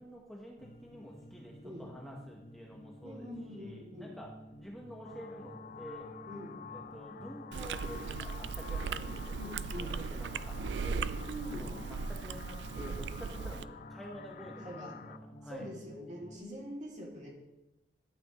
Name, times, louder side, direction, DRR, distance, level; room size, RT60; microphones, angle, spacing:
voice 1, 0.0-3.3 3.6-4.3 4.6-6.1 6.7-9.4 9.7-11.1 11.5-15.7, equal, ahead, -3 dB, 1.0 m, -49 dB
sound 1, 0.6-16.4, equal, 65° left, 1.2 m, -53 dB
voice 2, 3.0-4.2 6.3-6.6 9.0-10.0 11.1-11.7 14.6-15.0 15.5-17.3, equal, 40° right, -2 dB, 2.3 m, -44 dB
sound 2, 5.0-15.2, left 7 dB, 45° left, 0.3 m, -49 dB
Chewing mastication, 7.5-13.6, right 5 dB, 70° right, 0.3 m, -38 dB
12.0 x 7.9 x 3.1 m, 0.95 s
head